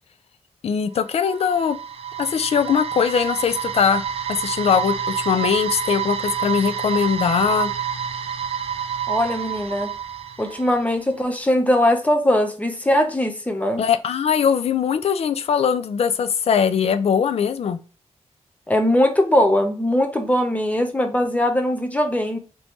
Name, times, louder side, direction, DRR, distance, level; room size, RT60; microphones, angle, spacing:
voice 1, 0.6-1.8 2.2-4.0 4.3-7.7 13.8-17.8, left 7 dB, 65° left, 11 dB, 0.4 m, -21 dB
sound 1, 1.0-11.0, right 8 dB, 60° right, 0.4 m, -28 dB
voice 2, 9.1-9.9 10.4-13.8 18.7-22.4, left 1 dB, 10° left, 5 dB, 0.6 m, -20 dB
2.9 x 2.7 x 3.4 m, 0.36 s
wide cardioid pair, 130°, 12 cm